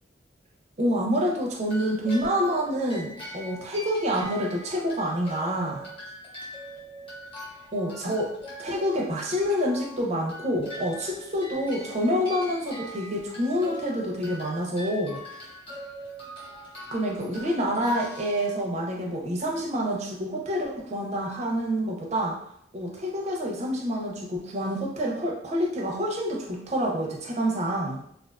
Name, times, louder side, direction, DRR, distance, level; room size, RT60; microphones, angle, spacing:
voice 1, 0.8-5.8 7.7-8.3 8.6-15.2 16.9-22.4 22.7-28.0, equal, 40° right, -1 dB, 0.5 m, -27 dB
sound 1, 1.7-19.1, equal, 30° left, 0.9 m, -42 dB
2.4 x 2.3 x 2.3 m, 0.70 s
head